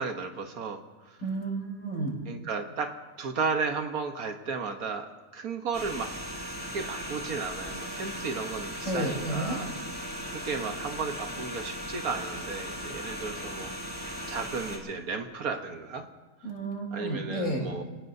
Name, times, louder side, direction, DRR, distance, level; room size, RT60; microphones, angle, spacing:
voice 1, 0.0-1.2 2.3-2.9 3.2-6.1 6.5-9.7 9.9-10.0 10.3-16.0 16.9-17.8, right 4 dB, 65° right, 5 dB, 1.5 m, -34 dB
voice 2, 1.2-2.1 8.8-9.6 16.4-17.7, right 2 dB, 60° left, -1 dB, 4.2 m, -31 dB
sound 1, 5.7-14.8, equal, 5° left, 3.0 m, -38 dB
28.5 x 18.5 x 2.7 m, 1.3 s
omnidirectional pair, 1.7 m